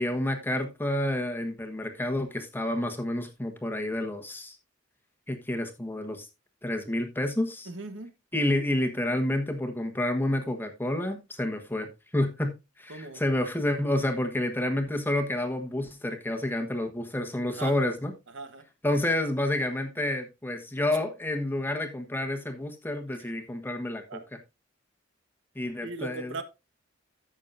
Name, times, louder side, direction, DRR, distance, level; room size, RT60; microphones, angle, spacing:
voice 1, 0.0-4.6 5.3-6.3 6.6-7.7 8.3-18.1 18.8-24.2 25.5-26.3, left 1 dB, 10° left, 1.3 m, -29 dB
voice 2, 7.7-8.1 12.9-13.2 17.5-17.8 18.3-18.6 23.2-23.3 24.1-24.2 25.8-26.4, right 3 dB, 65° right, 1.2 m, -38 dB
14.5 x 6.4 x 2.6 m
head